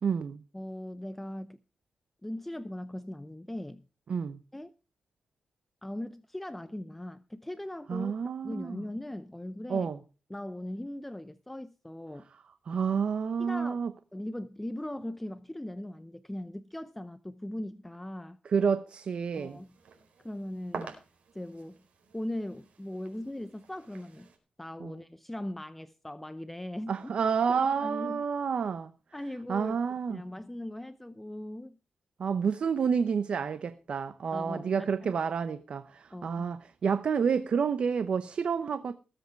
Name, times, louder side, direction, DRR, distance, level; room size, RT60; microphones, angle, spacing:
voice 1, 0.0-0.4 4.1-4.4 7.9-8.8 9.7-10.0 12.7-13.9 18.4-19.6 20.7-20.9 24.8-25.0 26.9-28.9 29.5-30.2 32.2-38.9, right 6 dB, 60° right, 0.9 m, -29 dB
voice 2, 0.5-1.6 2.2-3.9 4.5-4.7 5.8-8.1 8.4-9.9 10.3-12.3 13.4-13.8 14.1-18.4 19.4-19.7 20.2-20.9 21.3-21.8 22.1-24.3 24.6-27.1 27.5-28.2 29.1-29.8 30.1-31.8 34.3-35.1 36.1-36.5, left 1 dB, 10° left, 0.6 m, -39 dB
sound 1, 19.3-24.4, right 5 dB, 80° right, 4.5 m, -48 dB
20.0 x 8.0 x 4.6 m
wide cardioid pair, 120°, 2 cm